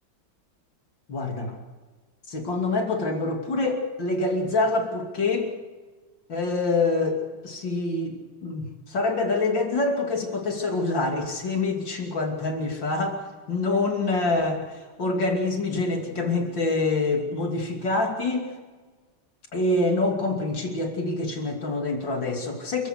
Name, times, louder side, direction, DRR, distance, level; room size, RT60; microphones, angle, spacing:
voice 1, 1.1-1.6 2.3-5.5 6.3-18.5 19.5-22.9, left 3 dB, 65° left, 2 dB, 3.5 m, -26 dB
29.0 x 15.5 x 6.5 m, 1.3 s
omnidirectional pair, 2.2 m